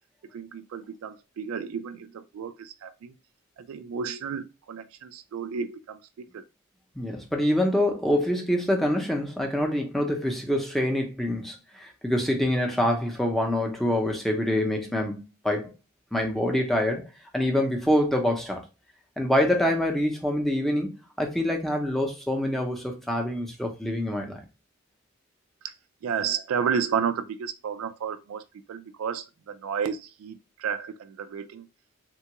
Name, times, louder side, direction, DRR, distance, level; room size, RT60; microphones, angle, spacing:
voice 1, 0.3-3.1 3.6-6.4 25.6-25.7 26.0-28.4 28.7-31.7, right 7 dB, 80° right, 0.3 m, -32 dB
voice 2, 7.0-15.7 16.1-17.1 17.3-18.6 19.2-24.4, left 1 dB, ahead, 0.5 m, -26 dB
3.6 x 2.3 x 2.8 m
head